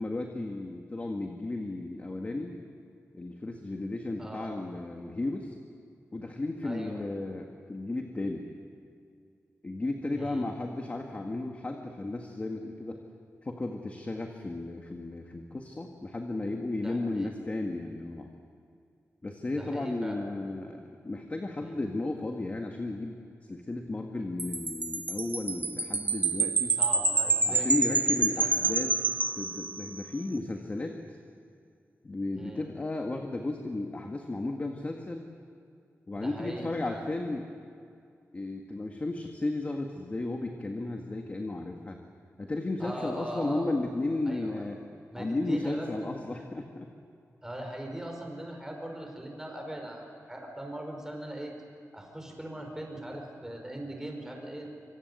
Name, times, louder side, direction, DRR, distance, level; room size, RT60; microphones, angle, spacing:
voice 1, 0.0-2.6 3.1-5.6 6.1-8.5 9.6-13.0 13.4-18.3 19.2-23.2 23.5-26.8 27.4-31.2 32.0-35.3 36.1-37.5 38.3-42.0 42.4-44.8 45.2-46.9, left 2 dB, 30° left, 3 dB, 1.7 m, -34 dB
voice 2, 4.2-4.5 6.6-7.1 10.1-10.7 16.8-17.4 19.5-20.2 21.6-21.8 26.7-28.8 32.4-32.7 36.1-37.0 42.8-43.7 44.3-44.7 45.1-46.1 47.4-51.5 51.9-54.6, right 1 dB, 10° right, 2 dB, 5.0 m, -40 dB
Wind chime, 24.4-30.1, right 3 dB, 35° right, 1.0 m, -28 dB
26.0 x 25.0 x 8.2 m, 2.4 s
wide cardioid pair, 150°, 5 cm